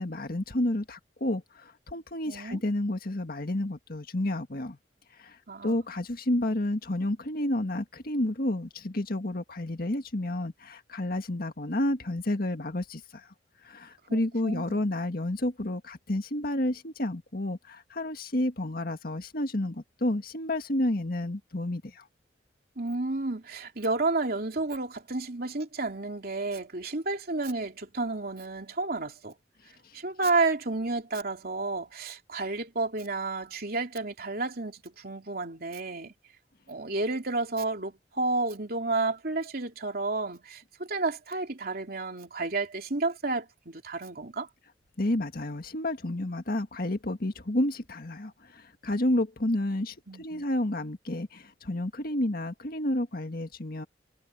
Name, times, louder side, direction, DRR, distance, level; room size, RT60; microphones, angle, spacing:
voice 1, 0.0-4.8 5.2-5.4 5.6-13.3 13.6-22.0 45.0-53.9, left 1 dB, 55° left, 1.9 m, -30 dB
voice 2, 2.3-2.6 5.5-5.8 14.1-14.8 22.8-29.3 29.9-36.1 36.7-44.5 50.1-50.5, right 3 dB, 55° right, 3.1 m, -31 dB
head